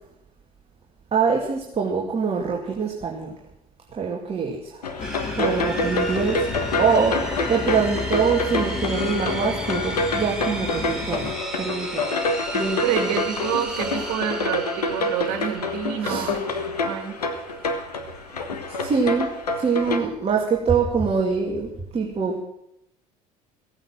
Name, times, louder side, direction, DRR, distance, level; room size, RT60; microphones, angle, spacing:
voice 1, 1.1-3.4 3.9-4.8 5.4-6.5 6.8-12.1 12.5-13.1 16.0-16.3 18.8-19.3 19.6-22.4, right 5 dB, 30° right, -1 dB, 2.3 m, -24 dB
sound 1, 4.8-20.0, left 2 dB, 85° left, 1.3 m, -27 dB
sound 2, 5.0-11.3, left 4 dB, 30° left, 1.6 m, -32 dB
sound 3, 5.0-19.0, right 1 dB, 5° right, 3.6 m, -36 dB
voice 2, 12.8-17.1, right 8 dB, 65° right, 5 dB, 2.5 m, -28 dB
16.5 x 8.9 x 7.5 m, 0.79 s
figure-of-eight pair, 65°, 20 cm